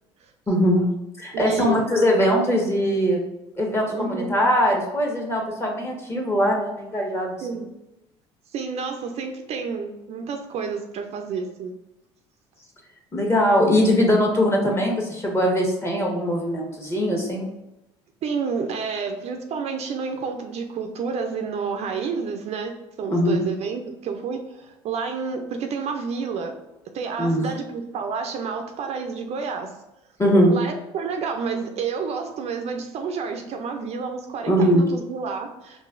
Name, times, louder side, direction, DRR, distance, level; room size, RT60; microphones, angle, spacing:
voice 1, 0.5-0.9 1.2-3.2 3.6-7.4 13.1-17.5 23.1-23.4 27.2-27.5 30.2-30.6 34.5-34.8, equal, 20° left, 0 dB, 1.3 m, -21 dB
voice 2, 1.3-1.8 3.9-4.3 7.4-7.7 8.5-11.7 18.2-22.7 23.0-26.6 26.9-29.7 30.5-35.8, right 5 dB, 50° right, 5 dB, 0.5 m, -30 dB
4.7 x 2.5 x 2.5 m, 0.94 s
hypercardioid pair, 65°, 14 cm